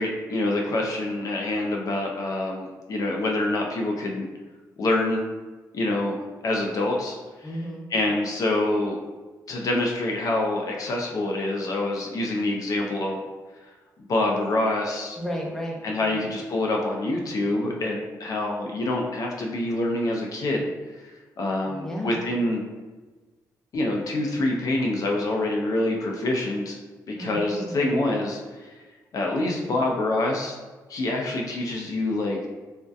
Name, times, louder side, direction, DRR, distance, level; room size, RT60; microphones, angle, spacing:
voice 1, 0.0-4.3 4.8-5.2 5.7-7.2 7.9-9.0 9.5-13.2 14.1-15.2 15.8-20.7 21.4-22.6 23.7-26.8 27.1-28.7 29.1-30.6 30.9-32.4, left 2 dB, 55° left, 0 dB, 0.4 m, -26 dB
voice 2, 7.4-7.9 15.2-16.2 21.7-22.2 27.1-27.8, equal, 5° left, -3 dB, 0.6 m, -33 dB
2.5 x 2.1 x 2.3 m, 1.2 s
cardioid pair, 70°, 7 cm